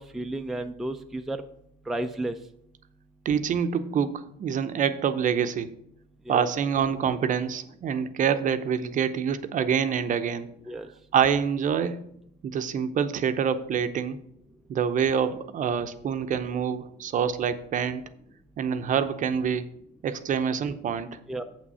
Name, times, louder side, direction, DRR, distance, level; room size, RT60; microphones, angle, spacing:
voice 1, 0.0-1.4 1.9-2.3 6.3-6.4 10.7-10.9 21.3-21.5, right 1 dB, ahead, 5 dB, 0.5 m, -32 dB
voice 2, 3.2-5.7 6.3-10.5 11.1-12.2 12.4-14.2 14.7-18.0 18.6-19.7 20.0-21.2, right 7 dB, 40° right, 10 dB, 0.7 m, -26 dB
7.5 x 6.1 x 5.5 m, 0.73 s
supercardioid pair, 100°, 20 cm